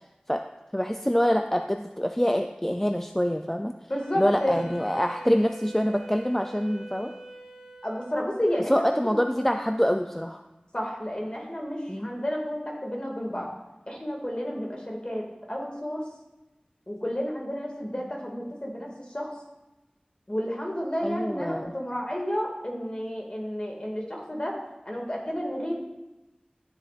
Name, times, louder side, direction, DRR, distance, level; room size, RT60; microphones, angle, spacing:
voice 1, 0.7-3.7 4.1-7.1 8.7-10.4 11.9-12.1 21.0-21.7, equal, 10° left, 6 dB, 0.4 m, -25 dB
voice 2, 3.9-4.6 7.8-8.7 9.0-9.5 10.7-13.5 13.9-16.0 16.9-19.3 20.3-24.6 24.9-25.7, equal, 35° left, -1 dB, 2.1 m, -31 dB
Wind instrument woodwind instrument, 3.9-8.5, right 1 dB, 10° right, 1.7 m, -46 dB
13.0 x 7.0 x 2.5 m, 1.0 s
wide cardioid pair, 40°, 3 cm